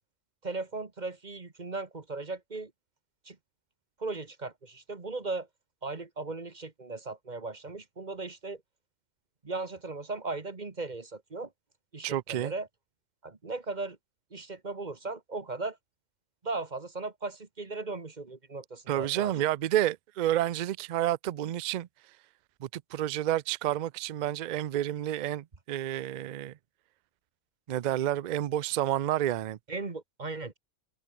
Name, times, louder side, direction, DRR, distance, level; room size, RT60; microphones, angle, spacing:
voice 1, 0.4-2.7 3.2-3.4 4.0-5.5 5.8-8.6 9.4-11.5 11.9-12.7 13.2-14.0 14.3-15.8 16.4-19.3 29.7-30.6, right 3 dB, 35° right, 1.6 m, -37 dB
voice 2, 12.0-12.5 18.9-21.9 22.6-26.6 27.7-29.6, right 12 dB, 60° right, 0.4 m, -30 dB
omnidirectional pair, 1.3 m